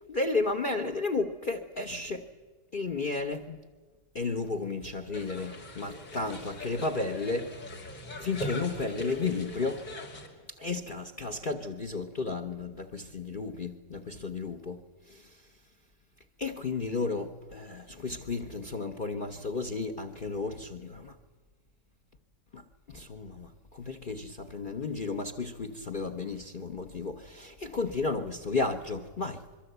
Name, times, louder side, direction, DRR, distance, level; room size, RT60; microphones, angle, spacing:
voice 1, 0.1-2.3 2.7-3.6 4.1-7.6 8.2-9.8 10.5-14.8 15.1-15.4 16.4-21.2 22.5-29.4, left 3 dB, 40° left, 7 dB, 0.8 m, -33 dB
sound 1, 5.1-10.3, left 1 dB, 85° left, 3.4 m, -40 dB
25.5 x 22.5 x 8.0 m, 1.4 s
omnidirectional pair, 1.8 m